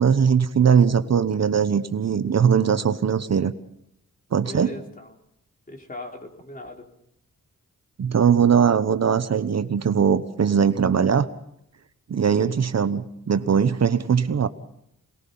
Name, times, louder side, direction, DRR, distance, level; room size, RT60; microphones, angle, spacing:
voice 1, 0.0-3.5 4.3-4.7 8.0-11.3 12.1-14.5, right 7 dB, 55° right, 11 dB, 1.0 m, -20 dB
voice 2, 4.5-5.2 5.7-6.8, left 1 dB, 25° left, 2 dB, 4.1 m, -39 dB
27.0 x 19.5 x 5.5 m, 0.76 s
wide cardioid pair, 110°, 32 cm